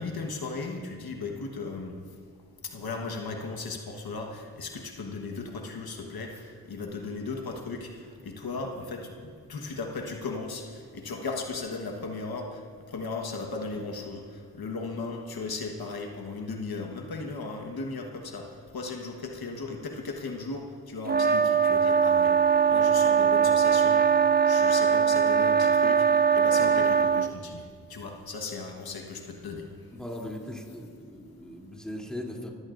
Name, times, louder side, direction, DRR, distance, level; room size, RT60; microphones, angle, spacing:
voice 1, 0.0-1.9 2.6-12.6 12.9-22.3 22.7-24.0 24.4-26.1 26.3-27.6 27.9-29.7, left 3 dB, 70° left, 2 dB, 1.4 m, -36 dB
sound 1, 21.1-27.3, right 7 dB, 25° right, 0.5 m, -21 dB
voice 2, 29.9-32.5, left 1 dB, ahead, -1 dB, 3.0 m, -39 dB
24.5 x 16.0 x 2.6 m, 2.2 s
cardioid pair, 55°, 38 cm